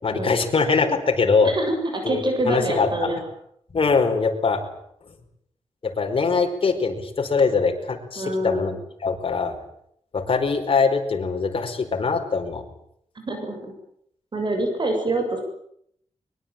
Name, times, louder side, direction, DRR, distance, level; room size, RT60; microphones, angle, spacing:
voice 1, 0.0-1.5 2.0-2.2 2.5-3.1 3.7-4.6 5.8-8.7 9.0-9.5 10.1-12.6, left 4 dB, 55° left, 4 dB, 5.1 m, -22 dB
voice 2, 1.4-3.2 8.2-8.8 13.2-13.7 14.3-15.4, right 1 dB, 45° right, 5 dB, 7.4 m, -26 dB
23.5 x 22.5 x 9.2 m, 0.72 s
wide cardioid pair, 115°, 11 cm